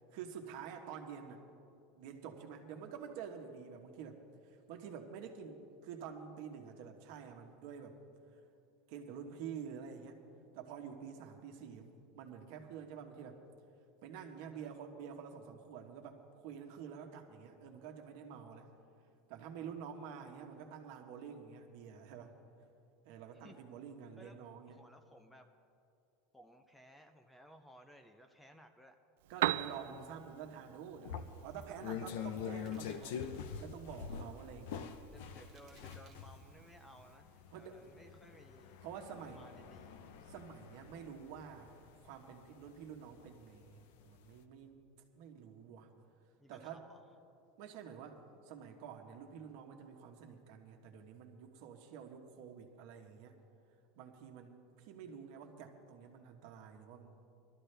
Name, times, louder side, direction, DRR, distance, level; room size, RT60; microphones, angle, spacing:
voice 1, 0.1-1.4 2.0-4.2 4.4-8.0 8.9-10.2 10.5-13.4 14.0-18.7 19.3-22.3 23.0-24.8 29.3-33.2 33.6-34.9 37.5-37.8 38.8-39.5 40.3-41.7 42.0-44.8 45.2-45.9 46.5-46.8 47.6-53.4 54.0-57.1, right 7 dB, 55° right, 4 dB, 1.2 m, -49 dB
voice 2, 24.7-25.5 26.3-29.0 35.1-38.8 39.1-40.0 46.4-47.0, equal, 5° left, 6 dB, 0.4 m, -59 dB
Piano, 29.2-37.2, right 14 dB, 80° right, 0.3 m, -43 dB
sound 1, 31.0-43.7 44.1-44.3, left 7 dB, 65° left, 0.7 m, -45 dB
sound 2, 32.6-33.5 33.8-34.2 34.9-35.0 35.4-36.4, right 6 dB, 25° right, 1.2 m, -67 dB
21.0 x 13.0 x 3.3 m, 2.5 s
supercardioid pair, 175°, 0 cm